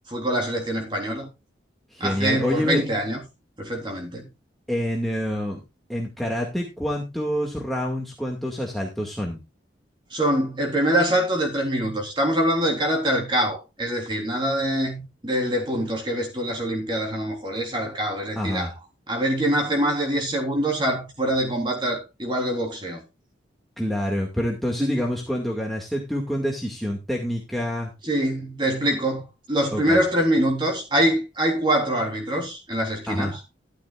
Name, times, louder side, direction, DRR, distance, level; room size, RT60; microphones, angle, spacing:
voice 1, 0.1-1.3 2.0-3.2 3.6-4.3 10.1-18.7 19.1-23.0 24.8-25.0 28.0-33.4, right 1 dB, 25° right, 3.6 m, -24 dB
voice 2, 1.9-2.8 4.7-5.6 5.9-9.4 18.3-18.7 23.8-27.9 29.7-30.0 33.1-33.3, equal, ahead, 2.1 m, -27 dB
13.5 x 11.5 x 2.5 m
head